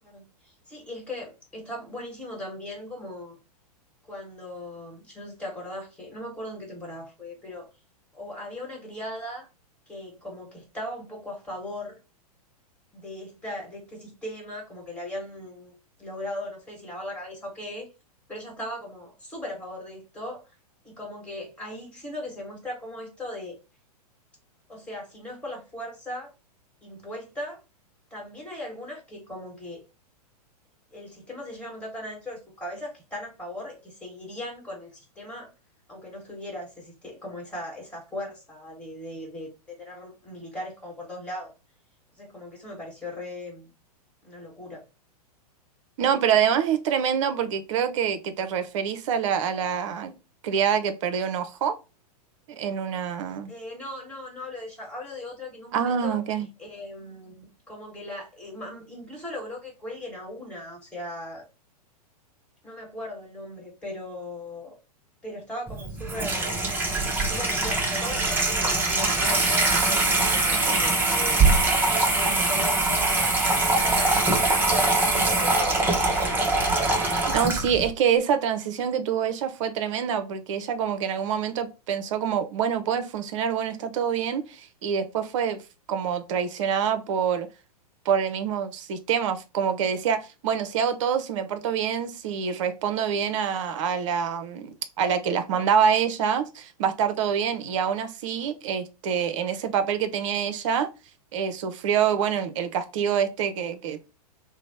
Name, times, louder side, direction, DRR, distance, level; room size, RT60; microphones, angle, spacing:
voice 1, 0.0-3.4 4.1-7.7 8.1-9.5 9.9-12.0 12.9-15.7 16.0-17.9 18.3-20.4 20.8-23.6 24.7-26.3 26.8-27.6 28.1-29.8 30.9-35.5 35.9-41.5 42.2-43.7 44.2-44.8 53.5-56.2 56.6-61.4 62.6-64.7 65.2-66.7 67.2-71.5 72.0-76.5, left 1 dB, 5° left, 1.4 m, -38 dB
voice 2, 46.0-50.1 50.4-51.7 52.5-53.5 55.7-56.5 77.3-85.6 85.9-87.5 88.1-100.9 101.3-104.0, right 8 dB, 50° right, 0.6 m, -26 dB
Water tap faucet / Sink (filling or washing), 65.7-77.9, right 2 dB, 10° right, 0.6 m, -23 dB
2.9 x 2.0 x 4.0 m
figure-of-eight pair, 105°, 20 cm